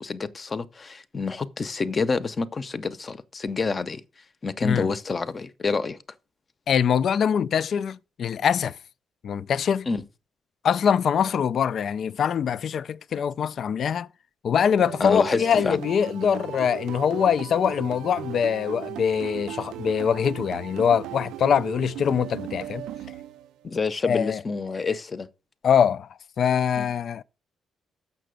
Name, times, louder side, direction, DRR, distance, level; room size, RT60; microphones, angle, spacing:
voice 1, 0.0-4.0 4.4-6.0 9.9-10.0 15.0-15.8 23.6-25.3 26.8-26.9, left 4 dB, 35° left, 0.7 m, -28 dB
voice 2, 6.7-8.8 9.2-9.9 10.6-14.1 14.4-22.8 24.0-24.4 25.6-26.1 26.4-27.2, left 7 dB, 60° left, 0.3 m, -23 dB
sound 1, 14.8-23.7, right 12 dB, 90° right, 0.3 m, -37 dB
6.7 x 6.0 x 6.3 m
cardioid pair, 90°, 0 cm